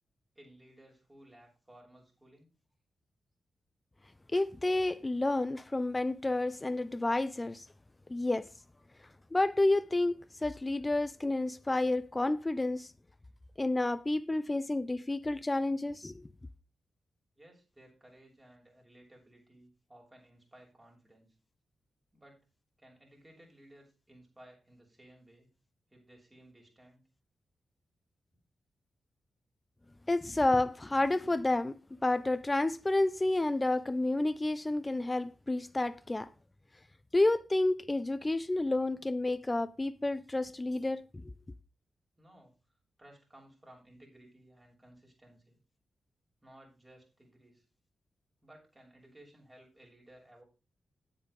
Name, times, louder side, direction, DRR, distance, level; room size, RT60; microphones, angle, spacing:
voice 1, 0.3-2.5 17.4-21.3 22.1-22.4 22.8-25.5 25.9-27.0 38.9-39.1 42.2-42.5 43.0-45.6 46.4-47.6 48.4-50.4, right 1 dB, 20° right, 6.7 m, -58 dB
voice 2, 4.3-7.7 8.1-8.5 9.3-12.9 13.6-16.3 30.1-36.3 37.1-41.3, left 2 dB, 25° left, 0.8 m, -30 dB
9.0 x 8.9 x 4.9 m
supercardioid pair, 45°, 0 cm